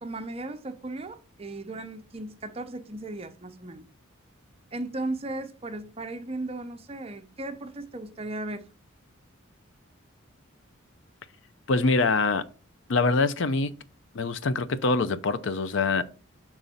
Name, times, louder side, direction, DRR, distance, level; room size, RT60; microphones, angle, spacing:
voice 1, 0.0-3.8 4.7-8.6, right 2 dB, 30° right, 0.6 m, -36 dB
voice 2, 11.7-12.4 12.9-13.7 14.1-16.0, left 3 dB, 60° left, 0.5 m, -24 dB
6.1 x 3.9 x 5.6 m
head